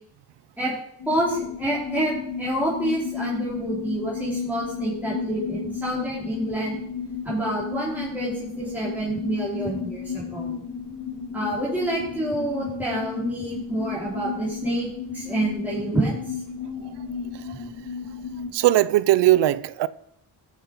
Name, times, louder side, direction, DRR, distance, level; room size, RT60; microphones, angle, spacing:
sound 1, 1.0-18.5, left 6 dB, 70° left, 3.2 m, -33 dB
voice 1, 1.1-6.8 7.2-10.5 11.3-14.9 15.1-16.4, right 1 dB, 5° right, 4.5 m, -27 dB
voice 2, 17.3-17.7 18.5-19.9, right 15 dB, 90° right, 0.6 m, -20 dB
14.0 x 7.6 x 4.9 m
cardioid pair, 85°, 41 cm